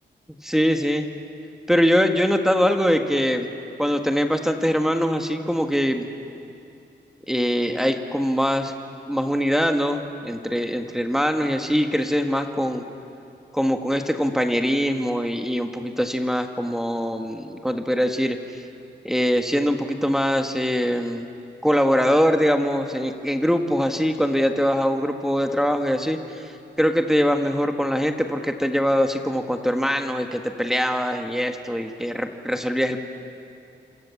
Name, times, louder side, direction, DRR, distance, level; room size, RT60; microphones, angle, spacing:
voice 1, 0.4-1.1 1.7-3.5 3.8-6.1 7.3-8.7 9.1-12.8 13.5-18.6 19.0-21.2 21.6-26.5 26.8-33.0, equal, ahead, 5 dB, 1.8 m, -22 dB
30.0 x 27.0 x 7.3 m, 2.6 s
cardioid pair, 75°, 19 cm